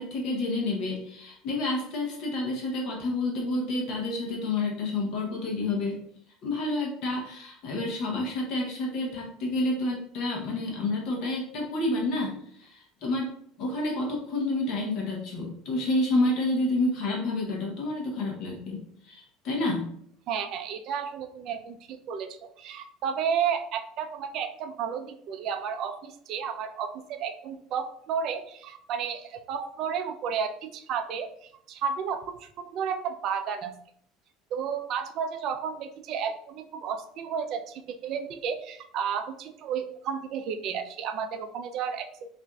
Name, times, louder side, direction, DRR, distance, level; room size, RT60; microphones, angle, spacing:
voice 1, 0.0-6.0 6.4-13.3 13.6-18.8 19.0-19.9, left 2 dB, 45° left, -1 dB, 0.7 m, -29 dB
voice 2, 20.3-33.7 34.5-42.1, right 7 dB, 40° right, 7 dB, 0.4 m, -32 dB
5.6 x 2.5 x 2.3 m, 0.66 s
cardioid pair, 175°, 0 cm